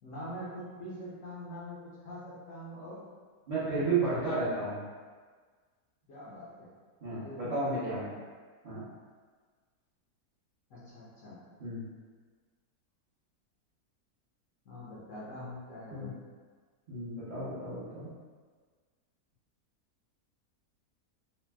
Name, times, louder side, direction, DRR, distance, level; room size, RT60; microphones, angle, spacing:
voice 1, 0.0-3.0 6.1-6.7 7.1-8.1 10.7-11.4 14.6-16.1, equal, 65° left, -9 dB, 1.0 m, -44 dB
voice 2, 3.5-4.8 7.0-8.1 8.6-8.8 11.6-11.8 15.9-16.1 16.9-18.1, right 3 dB, 40° right, -14 dB, 0.7 m, -32 dB
4.1 x 2.1 x 2.2 m, 1.5 s
omnidirectional pair, 1.6 m